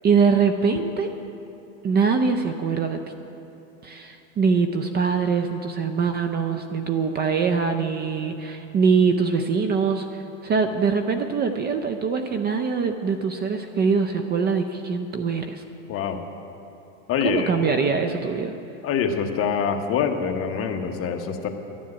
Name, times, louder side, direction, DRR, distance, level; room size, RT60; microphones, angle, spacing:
voice 1, 0.0-1.2 1.8-3.0 3.8-15.6 17.2-18.5, right 5 dB, 25° right, 7 dB, 0.6 m, -23 dB
voice 2, 15.9-16.2 17.1-17.5 18.8-21.5, left 7 dB, 35° left, 4 dB, 1.1 m, -25 dB
12.0 x 7.4 x 9.7 m, 2.9 s
supercardioid pair, 125°, 40 cm